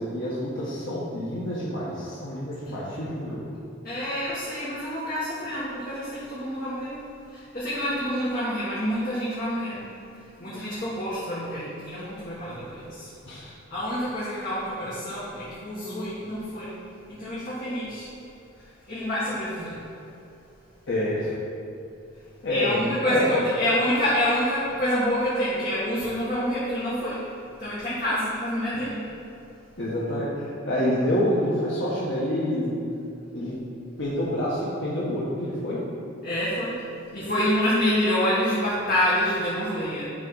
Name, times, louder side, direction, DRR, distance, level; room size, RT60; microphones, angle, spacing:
voice 1, 0.0-3.4 10.5-10.8 13.2-13.5 20.9-21.3 22.4-23.3 29.8-32.8 33.3-33.6 34.0-35.8, left 1 dB, 65° left, -8 dB, 1.2 m, -27 dB
voice 2, 3.8-7.0 7.3-9.8 10.4-16.7 17.1-18.1 18.6-19.8 22.5-27.3 27.6-29.0 36.2-36.8 37.1-40.0, equal, 45° left, -10 dB, 1.6 m, -27 dB
11.0 x 3.7 x 5.5 m, 2.6 s
head